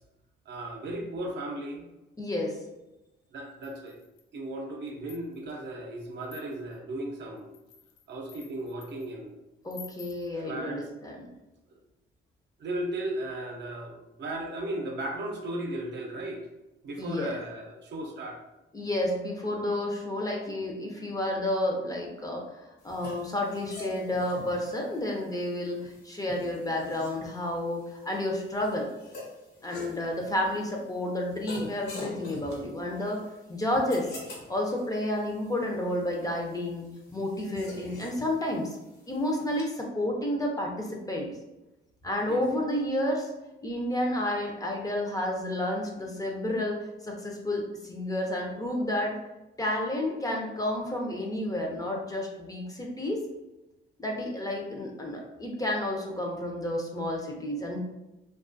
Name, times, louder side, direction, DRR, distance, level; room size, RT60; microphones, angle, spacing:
voice 1, 0.5-1.9 3.3-4.0 4.3-7.5 8.1-9.4 10.4-10.9 12.6-16.5 16.8-18.4 42.3-42.4, right 1 dB, 60° right, 1 dB, 0.6 m, -36 dB
voice 2, 2.2-2.6 9.6-11.2 17.0-17.3 18.7-22.4 22.8-28.9 29.6-33.2 33.5-34.1 34.5-36.9 37.1-38.8 39.1-41.3 42.0-43.3 43.6-46.8 47.0-49.1 49.6-53.2 54.0-57.8, left 1 dB, 20° left, 0 dB, 0.5 m, -30 dB
sound 1, 3.6-4.4 4.9-5.6 6.2-6.8 7.4-9.1 9.7-10.3, left 6 dB, 85° left, 0.4 m, -51 dB
sound 2, 22.8-39.6, left 2 dB, 60° left, 0.8 m, -46 dB
2.3 x 2.3 x 2.5 m, 0.99 s
cardioid pair, 90°, 20 cm